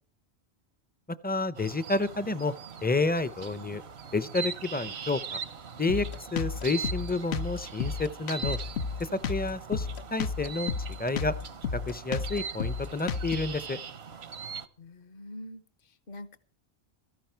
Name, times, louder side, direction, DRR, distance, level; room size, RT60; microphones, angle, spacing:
voice 1, 1.2-2.5 2.8-3.8 4.1-5.4 5.8-8.6 9.0-10.7 11.0-11.3 11.7-13.8, left 3 dB, 10° left, 15 dB, 0.5 m, -30 dB
sound 1, 1.5-14.7, right 6 dB, 80° right, 1.2 m, -41 dB
Drum kit, 5.9-13.6, left 5 dB, 80° left, 1.1 m, -33 dB
voice 2, 14.8-16.4, left 1 dB, 60° left, 13 dB, 1.2 m, -45 dB
17.0 x 14.0 x 4.5 m, 0.40 s
omnidirectional pair, 1.1 m